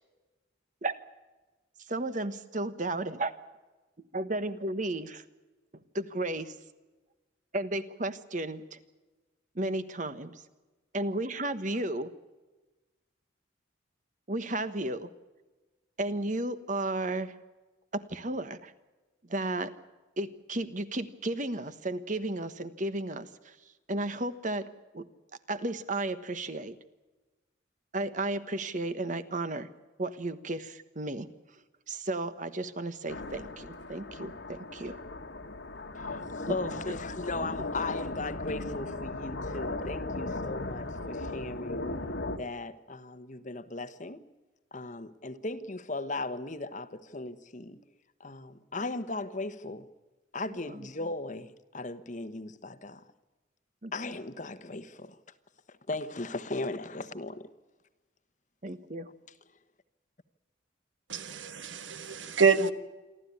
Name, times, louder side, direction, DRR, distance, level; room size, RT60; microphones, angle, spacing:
voice 1, 1.9-3.3 4.1-5.2 5.9-6.5 7.5-8.8 9.5-10.4 10.9-12.1 14.3-15.1 16.0-17.3 17.9-18.7 19.2-19.7 20.2-23.5 23.9-24.7 24.9-25.1 25.5-26.8 27.9-29.7 30.0-31.3 31.9-35.0 36.5-36.6 37.4-37.5 50.5-50.9 53.8-53.9 58.6-59.1, right 2 dB, 40° right, 1.3 m, -33 dB
sound 1, 33.1-42.4, left 2 dB, 65° left, 1.7 m, -37 dB
voice 2, 35.9-41.8 42.4-44.2 44.7-47.8 48.2-49.9 50.3-53.0 53.9-55.2 55.9-57.5, left 2 dB, 40° left, 1.2 m, -37 dB
voice 3, 61.1-62.7, right 5 dB, 70° right, 1.4 m, -26 dB
28.0 x 12.5 x 9.7 m
head